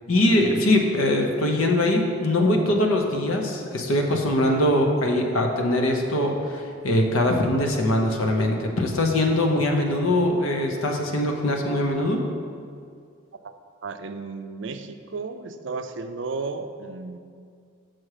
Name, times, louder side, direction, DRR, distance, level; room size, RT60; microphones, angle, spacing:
voice 1, 0.1-12.2, left 1 dB, 90° left, 2 dB, 0.9 m, -22 dB
voice 2, 13.8-17.2, right 4 dB, 60° right, 8 dB, 0.4 m, -33 dB
6.2 x 6.1 x 4.9 m, 2.2 s
head